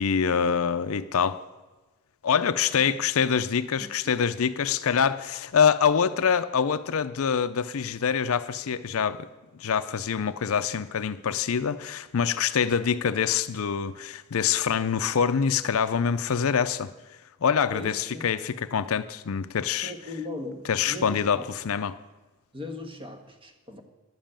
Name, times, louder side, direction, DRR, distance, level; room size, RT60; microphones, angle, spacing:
voice 1, 0.0-1.4 2.2-9.3 9.5-16.9 17.4-19.9 20.7-22.0, left 7 dB, 65° left, 12 dB, 0.5 m, -25 dB
voice 2, 17.7-18.2 19.8-21.5 22.5-23.8, left 2 dB, 25° right, 4 dB, 1.5 m, -38 dB
12.0 x 7.5 x 8.9 m, 1.2 s
head